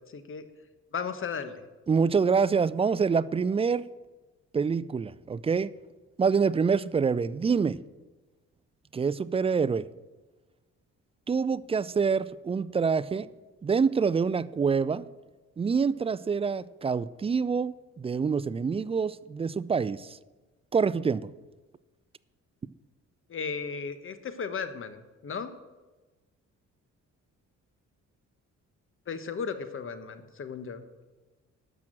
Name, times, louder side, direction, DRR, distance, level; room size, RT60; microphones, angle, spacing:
voice 1, 0.1-0.4 0.9-1.6 23.3-25.5 29.1-30.8, left 5 dB, 45° left, 1.2 m, -35 dB
voice 2, 1.9-3.8 4.5-5.7 6.2-7.8 8.9-9.9 11.3-13.3 13.6-15.0 15.6-20.2 20.7-21.3, right 5 dB, 20° right, 0.3 m, -26 dB
12.0 x 6.1 x 7.6 m
cardioid pair, 90°, 30 cm